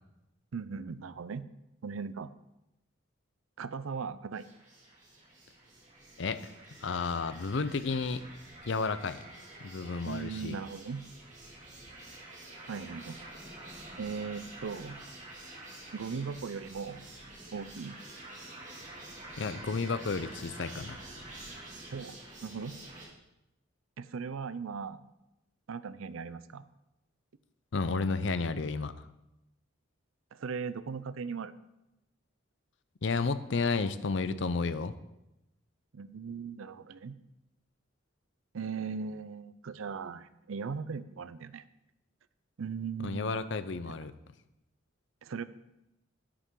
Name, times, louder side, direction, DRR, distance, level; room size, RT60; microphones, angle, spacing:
voice 1, 0.5-1.4 1.8-2.3 3.6-4.5 10.0-11.0 12.7-13.2 14.0-15.0 15.9-17.0 17.5-18.0 21.9-22.2 22.4-22.8 24.0-25.0 25.7-26.6 30.3-31.5 35.9-37.2 38.5-41.6 42.6-43.3 43.9-44.0 45.2-45.4, right 5 dB, 85° right, 15 dB, 0.5 m, -38 dB
sound 1, 4.3-23.1, right 2 dB, 35° right, 2.2 m, -48 dB
voice 2, 6.2-6.5 6.8-8.2 8.7-9.2 9.6-10.6 19.4-21.0 27.7-29.1 33.0-34.9 43.0-44.1, left 4 dB, 65° left, 13 dB, 0.6 m, -32 dB
10.0 x 9.9 x 3.8 m, 0.90 s
head